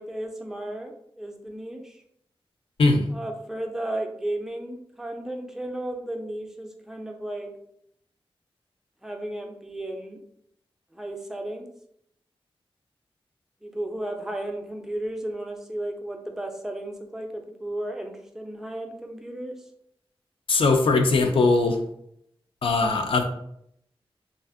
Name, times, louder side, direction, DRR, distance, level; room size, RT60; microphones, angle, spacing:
voice 1, 0.0-1.9 3.1-7.5 9.0-10.2 10.9-11.7 13.6-19.6, right 1 dB, 5° right, 3 dB, 0.4 m, -34 dB
voice 2, 20.5-21.8 22.6-23.2, left 3 dB, 65° left, 5 dB, 0.4 m, -20 dB
2.5 x 2.5 x 2.4 m, 0.72 s
wide cardioid pair, 85°, 10 cm